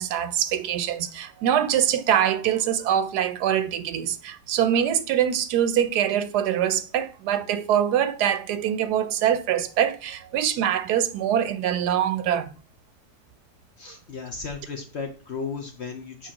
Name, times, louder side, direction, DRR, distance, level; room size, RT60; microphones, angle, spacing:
voice 1, 0.0-12.5, right 10 dB, 75° right, 1.1 m, -24 dB
voice 2, 13.8-16.3, left 5 dB, 55° left, 0.8 m, -35 dB
7.3 x 4.7 x 2.9 m
omnidirectional pair, 1.8 m